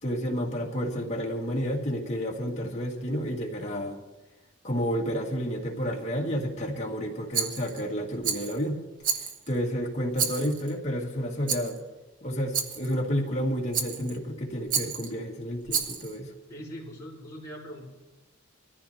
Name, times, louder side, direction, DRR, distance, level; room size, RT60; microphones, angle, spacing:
voice 1, 0.0-4.0 4.6-8.8 9.5-11.8 12.2-16.3, equal, 30° left, -2 dB, 2.1 m, -30 dB
Rattle, 7.3-7.8 8.2-8.6 9.0-9.6 10.1-10.7 11.5-11.8 12.5-12.9 13.7-14.2 14.7-15.1 15.7-16.1, right 7 dB, 40° right, 1.0 m, -30 dB
voice 2, 16.5-17.9, equal, 15° left, -6 dB, 4.1 m, -41 dB
22.5 x 14.5 x 2.9 m, 1.1 s
head